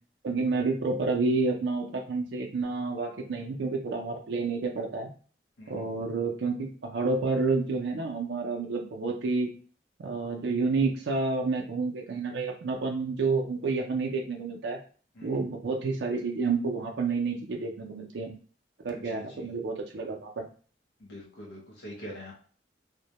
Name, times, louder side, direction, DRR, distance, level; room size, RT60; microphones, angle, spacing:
voice 1, 0.2-5.1 5.7-9.5 10.0-14.8 15.2-18.3 18.8-20.5, right 3 dB, 80° right, 1 dB, 0.4 m, -29 dB
voice 2, 5.6-6.1 15.1-15.4 18.9-19.5 21.0-22.3, equal, 85° left, -4 dB, 0.6 m, -44 dB
2.1 x 2.1 x 2.8 m, 0.42 s
head